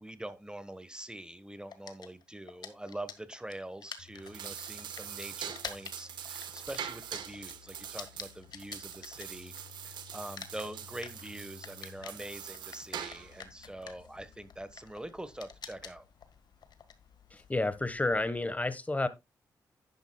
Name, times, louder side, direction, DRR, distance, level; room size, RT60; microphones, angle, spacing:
voice 1, 0.0-9.5 9.8-16.1, right 1 dB, 10° right, 1.3 m, -44 dB
sound 1, 1.7-9.9 10.2-18.4, left 7 dB, 70° left, 1.6 m, -48 dB
sound 2, 4.0-14.7, left 11 dB, 85° left, 1.1 m, -58 dB
sound 3, 4.1-13.4, right 9 dB, 85° right, 1.3 m, -43 dB
voice 2, 17.3-19.1, left 2 dB, 20° left, 1.3 m, -30 dB
11.0 x 10.5 x 2.3 m
cardioid pair, 65°, 8 cm